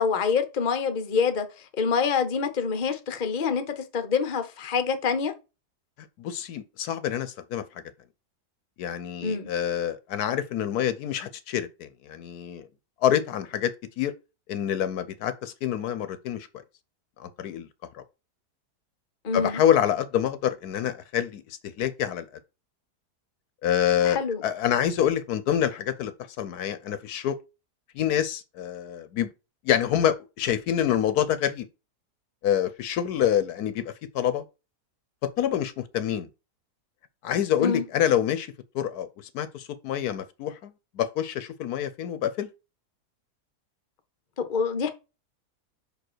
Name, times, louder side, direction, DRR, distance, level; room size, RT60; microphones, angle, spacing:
voice 1, 0.0-5.3 9.2-9.5 19.2-19.6 24.0-24.4 37.6-37.8 44.4-44.9, left 5 dB, 35° left, 0.8 m, -26 dB
voice 2, 6.2-7.6 8.8-12.7 13.0-14.1 14.5-16.5 17.2-17.7 17.9-18.0 19.3-22.3 23.6-27.4 27.9-29.3 29.6-31.7 32.4-34.4 35.2-36.3 37.2-42.5, left 10 dB, 70° left, 1.2 m, -27 dB
5.2 x 5.1 x 6.1 m
omnidirectional pair, 1.7 m